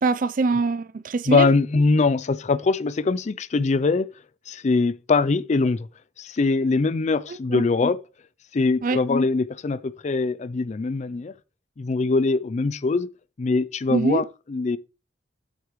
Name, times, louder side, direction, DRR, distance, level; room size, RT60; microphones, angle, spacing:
voice 1, 0.0-1.5 7.5-7.6 8.8-9.0 13.9-14.2, right 4 dB, 45° right, 0.5 m, -23 dB
voice 2, 1.3-4.1 4.5-5.9 6.2-8.0 8.5-11.3 11.8-13.1 13.4-14.8, left 3 dB, 40° left, 0.4 m, -22 dB
8.2 x 8.1 x 3.1 m
head